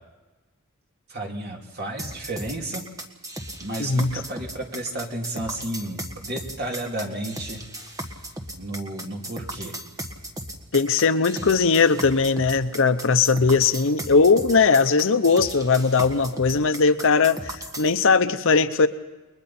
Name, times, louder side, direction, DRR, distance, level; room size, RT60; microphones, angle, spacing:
voice 1, 1.1-2.8 3.6-7.6 8.6-9.8, right 1 dB, 45° right, 0 dB, 3.0 m, -32 dB
sound 1, 2.0-17.9, right 1 dB, 15° right, 1.6 m, -36 dB
voice 2, 3.8-4.1 10.7-18.9, left 4 dB, 60° left, 11 dB, 0.8 m, -19 dB
29.5 x 22.0 x 4.3 m, 1.2 s
head